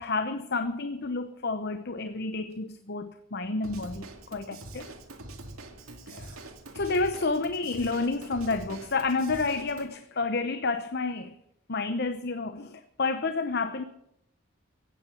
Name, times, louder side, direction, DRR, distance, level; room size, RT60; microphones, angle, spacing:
voice 1, 0.0-4.9 6.1-6.4 6.7-11.3 11.7-13.8, left 3 dB, 50° left, 9 dB, 0.8 m, -30 dB
Drum kit / Drum, 3.6-9.9, right 2 dB, 90° right, 2.2 m, -44 dB
16.0 x 8.7 x 8.5 m, 0.79 s
head